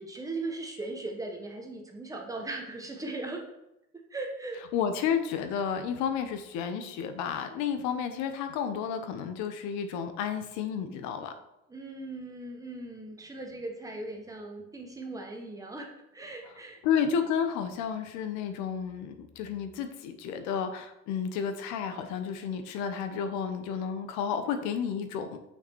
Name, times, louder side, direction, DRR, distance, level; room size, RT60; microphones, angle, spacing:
voice 1, 0.0-3.4 4.1-4.6 11.7-16.8, right 2 dB, 10° right, 2 dB, 1.0 m, -38 dB
voice 2, 4.7-11.3 16.8-25.4, left 7 dB, 75° left, 8 dB, 1.0 m, -31 dB
6.8 x 5.9 x 4.6 m, 0.87 s
cardioid pair, 150°, 29 cm